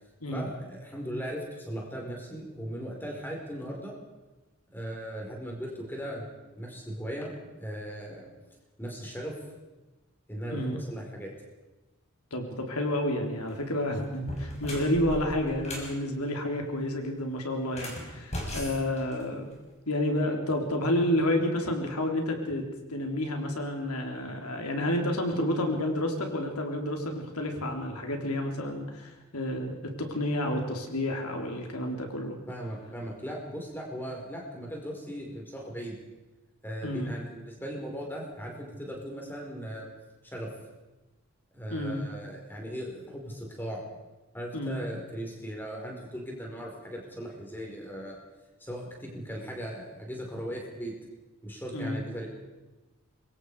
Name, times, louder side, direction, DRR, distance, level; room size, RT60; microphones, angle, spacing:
voice 1, 0.3-3.9 4.7-6.3 6.5-7.3 7.6-8.3 8.8-9.3 10.3-11.3 32.5-35.9 36.6-39.9 40.2-40.5 41.5-43.8 44.3-48.2 48.6-50.9 51.4-52.3, equal, 10° left, -1 dB, 5.0 m, -38 dB
voice 2, 12.3-19.4 19.9-32.4 36.8-37.1 41.7-42.0 44.5-44.8 51.7-52.0, left 1 dB, 90° left, 3 dB, 3.8 m, -30 dB
sound 1, 13.3-13.6 14.1-16.0 17.6-19.7, left 1 dB, 30° left, 5.4 m, -38 dB
25.5 x 22.5 x 5.0 m, 1.1 s
head